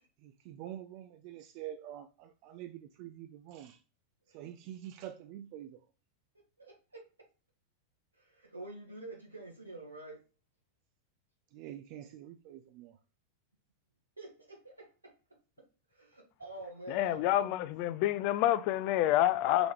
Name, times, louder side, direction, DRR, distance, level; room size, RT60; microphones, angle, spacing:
voice 1, 0.2-3.8 4.3-5.8 11.5-13.0, right 11 dB, 45° right, 0.5 m, -46 dB
voice 2, 6.6-7.0 8.2-10.2 14.2-15.1 15.9-17.5, right 2 dB, 80° right, 2.0 m, -47 dB
voice 3, 16.9-19.7, left 13 dB, 45° left, 0.4 m, -28 dB
6.0 x 3.5 x 4.9 m
figure-of-eight pair, 90°, 0 cm